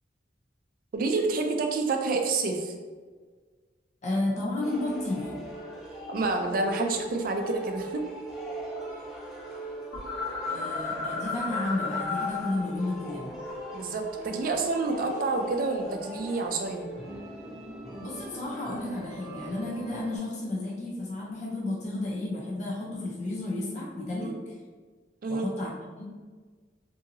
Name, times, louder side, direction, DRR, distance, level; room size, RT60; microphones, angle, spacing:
voice 1, 0.9-2.7 6.1-8.1 13.7-16.9 24.2-24.4 25.2-25.5, right 3 dB, 50° right, 4 dB, 0.3 m, -28 dB
voice 2, 4.0-5.3 10.5-13.3 18.0-24.3 25.3-26.1, left 2 dB, 40° left, -5 dB, 0.5 m, -32 dB
sound 1, 4.6-20.2, equal, 5° right, 0.6 m, -40 dB
sound 2, 9.9-12.5 12.8-15.1, left 4 dB, 65° left, 1.0 m, -35 dB
2.7 x 2.6 x 2.6 m, 1.5 s
head